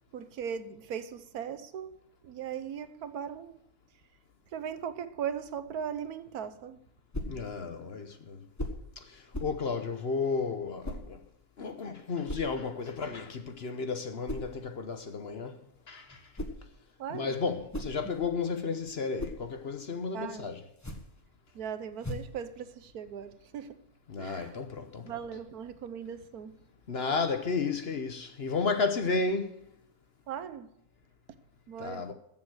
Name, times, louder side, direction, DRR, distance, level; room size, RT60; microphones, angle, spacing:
voice 1, 0.1-2.0 2.2-3.6 4.5-6.8 17.0-17.4 20.1-20.5 21.5-23.8 24.2-24.6 25.1-26.6 30.3-30.7 31.7-32.0, right 8 dB, 75° right, 1.3 m, -38 dB
sound 1, 7.1-7.4 8.6-8.9 9.3-9.6 10.8-11.1 12.3-12.6 14.3-14.5 16.1-16.7 17.5-18.4 18.9-19.5 20.7-21.2 22.0-22.4, left 1 dB, 10° left, 1.2 m, -38 dB
voice 2, 7.3-8.4 9.0-11.2 11.6-15.6 15.9-16.2 17.1-20.6 24.1-25.1 26.9-29.6 31.8-32.1, left 4 dB, 45° left, 1.0 m, -33 dB
14.5 x 7.3 x 6.2 m
omnidirectional pair, 1.6 m